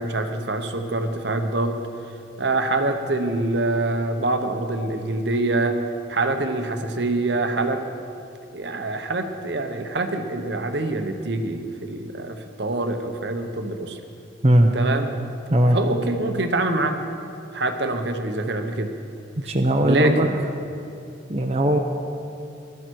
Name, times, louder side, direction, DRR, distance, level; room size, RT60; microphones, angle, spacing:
voice 1, 0.0-1.8 2.4-5.8 6.1-7.8 8.5-14.0 14.7-15.2 15.7-17.0 17.5-18.9 19.8-20.4, right 2 dB, 60° right, 6 dB, 0.9 m, -25 dB
voice 2, 14.4-14.7 15.5-15.8 19.4-20.3 21.3-21.8, right 1 dB, 30° right, 2 dB, 0.7 m, -18 dB
18.0 x 12.5 x 4.7 m, 2.6 s
head